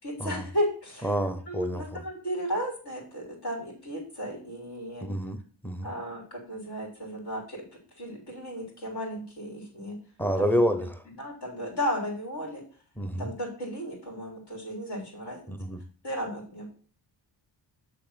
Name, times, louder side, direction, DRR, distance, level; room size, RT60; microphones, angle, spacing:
voice 1, 0.0-1.1 1.5-5.1 5.8-7.6 8.0-10.0 10.4-10.6 11.2-12.6 13.2-15.4 16.0-16.8, equal, 55° left, 3.4 m, -34 dB
voice 2, 1.0-2.0 5.0-5.9 10.2-11.0 13.0-13.3 15.5-15.8, equal, 5° left, 0.6 m, -28 dB
6.6 x 3.4 x 5.6 m
cardioid pair, 55°, 47 cm